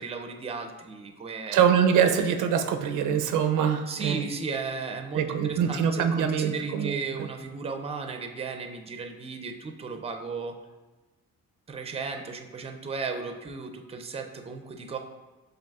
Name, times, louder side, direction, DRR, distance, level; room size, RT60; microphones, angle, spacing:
voice 1, 0.0-1.6 3.9-10.6 11.7-15.0, right 4 dB, 20° right, 5 dB, 0.5 m, -35 dB
voice 2, 1.5-4.3 5.1-7.3, right 8 dB, 85° right, 7 dB, 0.5 m, -24 dB
7.3 x 2.5 x 2.3 m, 1.2 s
cardioid pair, 90°, 30 cm